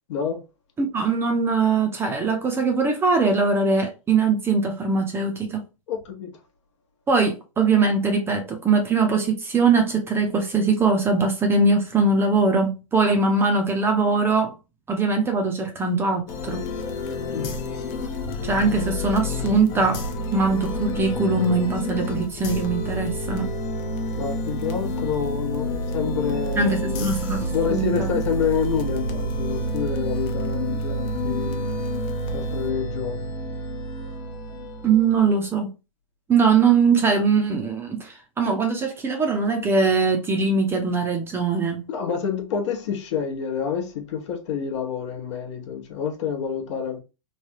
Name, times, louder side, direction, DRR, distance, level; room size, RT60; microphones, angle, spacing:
voice 1, 0.1-0.4 5.9-6.4 17.3-17.5 24.2-27.1 27.5-31.7 32.3-33.3 41.9-47.0, left 7 dB, 60° left, 0.9 m, -28 dB
voice 2, 0.8-5.7 7.1-14.5 14.9-16.6 18.4-20.0 20.3-23.5 26.6-28.1 34.8-35.7 36.3-41.9, right 4 dB, 15° right, 0.6 m, -21 dB
sound 1, 16.3-35.5, equal, 40° left, 0.7 m, -29 dB
3.2 x 2.3 x 2.8 m
hypercardioid pair, 125°, 18 cm